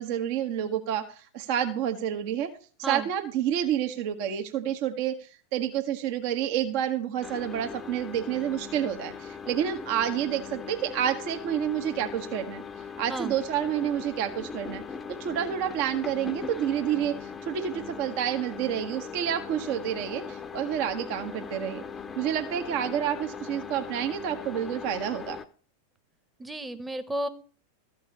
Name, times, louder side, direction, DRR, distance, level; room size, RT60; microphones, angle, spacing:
voice 1, 0.0-2.5 2.9-12.6 13.0-14.8 15.2-21.8 22.2-25.4, right 10 dB, 45° right, 6 dB, 1.2 m, -29 dB
sound 1, 7.2-25.4, left 6 dB, 15° left, 0.8 m, -40 dB
voice 2, 26.4-27.3, right 1 dB, 10° right, 10 dB, 1.1 m, -32 dB
14.0 x 5.3 x 6.8 m, 0.41 s
figure-of-eight pair, 90°, 0 cm